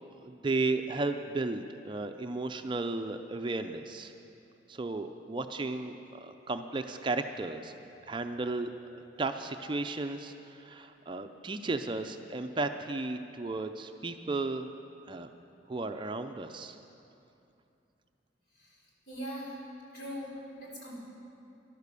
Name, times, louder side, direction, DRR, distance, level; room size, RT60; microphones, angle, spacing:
voice 1, 0.0-4.1 4.7-7.7 8.1-14.7 15.1-15.3 15.7-16.8, right 3 dB, 25° right, 7 dB, 0.4 m, -34 dB
voice 2, 18.5-19.6 19.9-20.3 20.6-21.0, equal, 60° left, -5 dB, 4.2 m, -41 dB
13.0 x 11.5 x 6.8 m, 2.7 s
head